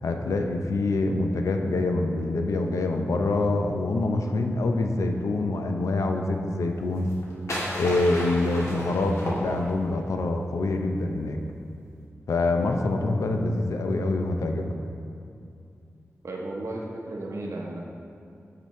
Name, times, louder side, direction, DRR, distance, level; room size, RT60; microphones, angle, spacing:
voice 1, 0.0-7.1 7.7-11.4 12.3-14.7, left 2 dB, 90° left, 4 dB, 0.5 m, -25 dB
sound 1, 7.0-10.0, left 1 dB, 75° left, 1.6 m, -33 dB
voice 2, 8.6-9.0 16.2-17.8, right 2 dB, 70° right, -1 dB, 0.8 m, -34 dB
8.8 x 5.9 x 3.2 m, 2.5 s
wide cardioid pair, 80°, 5 cm